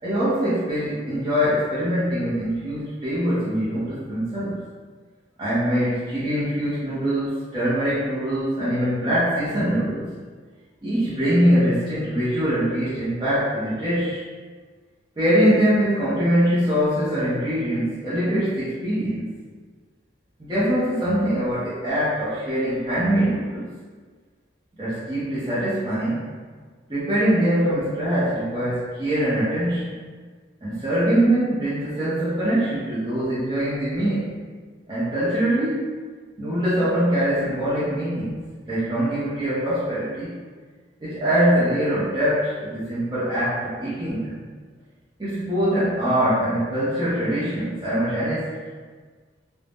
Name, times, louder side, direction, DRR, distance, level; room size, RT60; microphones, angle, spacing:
voice 1, 0.0-4.7 5.4-10.1 10.8-14.2 15.2-19.3 20.4-23.7 24.8-26.2 26.9-30.0 30.6-34.5 34.9-35.8 36.4-40.4 41.0-44.4 45.2-48.5, equal, 20° right, -12 dB, 0.5 m, -23 dB
2.5 x 2.0 x 3.4 m, 1.5 s
head